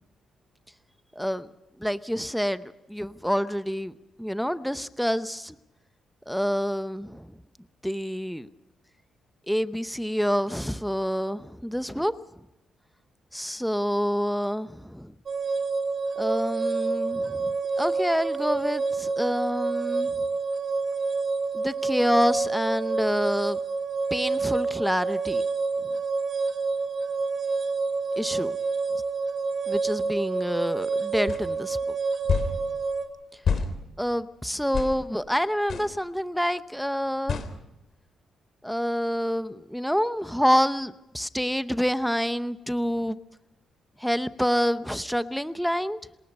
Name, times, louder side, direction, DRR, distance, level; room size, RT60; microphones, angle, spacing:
voice 1, 1.2-1.5 1.8-3.9 4.2-5.6 6.3-7.3 7.8-8.5 9.5-12.1 13.3-15.1 16.2-20.1 21.5-23.6 24.1-25.4 28.2-28.6 29.7-31.8 34.0-37.4 38.6-43.2 44.0-46.0, equal, ahead, 12 dB, 0.7 m, -27 dB
sound 1, 15.3-33.1, right 4 dB, 45° right, 2.9 m, -28 dB
sound 2, 31.3-31.4 32.3-32.5 33.5-33.7 34.7-34.9 35.7-35.9 37.3-37.5, left 6 dB, 55° left, 3.3 m, -26 dB
27.5 x 20.5 x 5.4 m, 0.91 s
cardioid pair, 140°, 0 cm